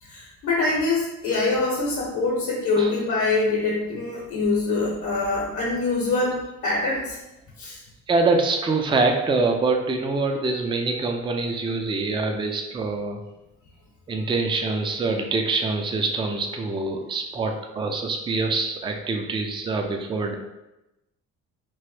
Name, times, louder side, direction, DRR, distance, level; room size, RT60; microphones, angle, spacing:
voice 1, 0.0-7.2 7.6-7.8, left 3 dB, 80° left, -5 dB, 0.9 m, -24 dB
voice 2, 8.1-13.2 14.1-20.3, right 3 dB, 15° right, 3 dB, 0.3 m, -25 dB
3.0 x 2.1 x 3.1 m, 0.95 s
cardioid pair, 90°, 30 cm